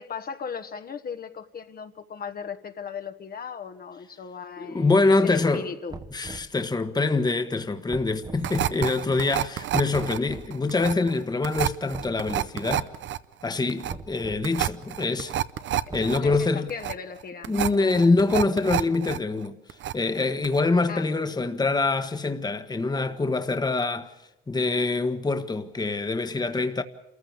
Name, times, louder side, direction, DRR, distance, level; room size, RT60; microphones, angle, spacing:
voice 1, 0.0-6.0 15.9-16.0 16.2-18.1 20.9-21.1, left 6 dB, 50° left, 1.3 m, -37 dB
voice 2, 4.6-5.7 6.1-12.9 13.4-15.3 15.9-16.7 17.5-19.6 19.9-24.1 24.5-26.8, left 3 dB, 20° left, 1.3 m, -25 dB
sound 1, 5.9-6.5 7.9-8.5 9.9-10.5 11.9-12.5 13.9-14.5 15.9-16.6, right 3 dB, 20° right, 1.0 m, -40 dB
sound 2, 8.4-19.2 19.5-20.2 20.4-20.6, right 12 dB, 70° right, 0.8 m, -29 dB
27.5 x 14.5 x 8.6 m
cardioid pair, 90°, 20 cm